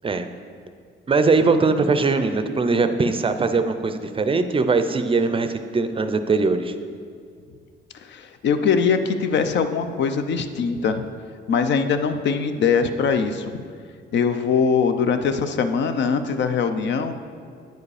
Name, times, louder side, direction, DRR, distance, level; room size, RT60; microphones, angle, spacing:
voice 1, 1.1-6.7, right 4 dB, 25° right, 9 dB, 0.5 m, -21 dB
voice 2, 8.1-11.0 11.5-13.6 14.1-17.1, left 6 dB, 65° left, 9 dB, 0.6 m, -22 dB
9.1 x 4.9 x 4.9 m, 2.2 s
cardioid pair, 90°, 20 cm